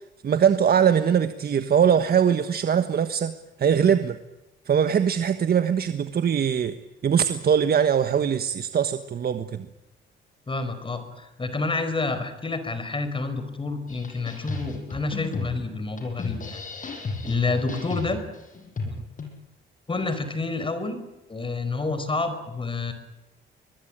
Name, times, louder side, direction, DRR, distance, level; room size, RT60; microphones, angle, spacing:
voice 1, 0.2-3.3 3.6-4.2 4.7-6.8 7.0-9.7, right 8 dB, 50° right, 10 dB, 1.4 m, -21 dB
voice 2, 10.5-16.9 17.2-18.2 18.8-18.9 19.9-21.0 21.3-22.9, left 3 dB, 25° left, 10 dB, 5.1 m, -29 dB
sound 1, 13.9-19.3, left 3 dB, 40° left, 7.7 m, -34 dB
23.5 x 22.0 x 8.9 m, 0.98 s
cardioid pair, 90°, 20 cm